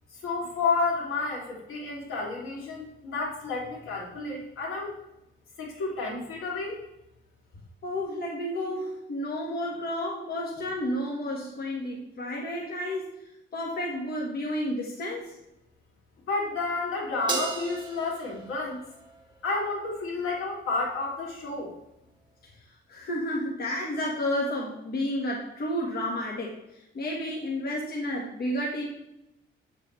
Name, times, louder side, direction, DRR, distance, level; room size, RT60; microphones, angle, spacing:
voice 1, 0.1-5.0 5.6-6.8 16.3-18.8 19.4-21.7, left 3 dB, 80° left, -2 dB, 3.0 m, -31 dB
voice 2, 7.8-13.1 13.5-15.4 22.9-28.9, left 1 dB, 50° left, -2 dB, 1.6 m, -31 dB
Crash cymbal, 17.3-19.8, right 4 dB, 20° right, 1.8 m, -35 dB
8.6 x 7.0 x 3.2 m, 0.89 s
cardioid pair, 140°, 21 cm